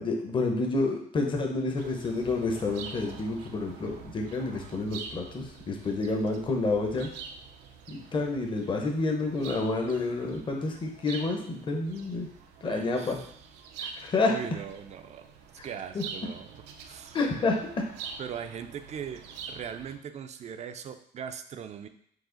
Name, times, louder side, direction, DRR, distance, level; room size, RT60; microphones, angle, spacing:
voice 1, 0.0-7.1 7.9-12.3 12.6-13.2 13.8-14.3 15.6-15.7 15.9-16.0 17.1-17.8, left 3 dB, 30° left, 2 dB, 0.7 m, -29 dB
sound 1, 1.8-20.0, right 6 dB, 90° right, 0.5 m, -46 dB
voice 2, 12.6-13.3 14.3-15.2 15.6-16.5 16.8-17.2 18.2-21.9, right 8 dB, 40° right, 8 dB, 0.4 m, -40 dB
4.7 x 2.4 x 3.8 m, 0.66 s
cardioid pair, 110°, 17 cm